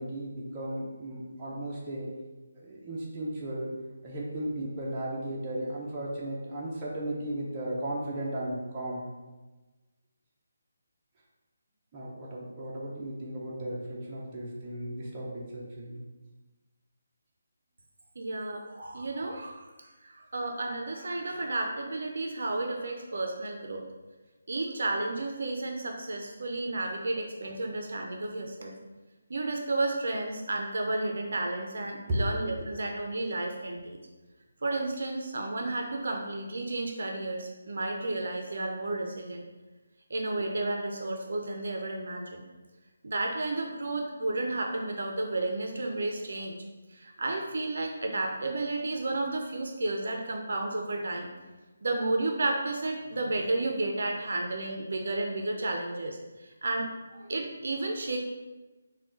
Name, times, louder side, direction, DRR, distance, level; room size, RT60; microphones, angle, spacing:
voice 1, 0.0-2.1 2.5-3.7 4.0-9.1 11.9-16.0 32.1-32.3, right 1 dB, 20° right, -6 dB, 0.6 m, -35 dB
voice 2, 18.2-19.6 20.0-23.8 24.5-28.7 29.3-34.0 34.6-39.4 40.1-42.4 43.0-46.5 46.9-51.3 51.8-58.2, right 2 dB, 65° right, 2 dB, 0.4 m, -32 dB
3.6 x 2.2 x 3.6 m, 1.2 s
figure-of-eight pair, 165°, 0 cm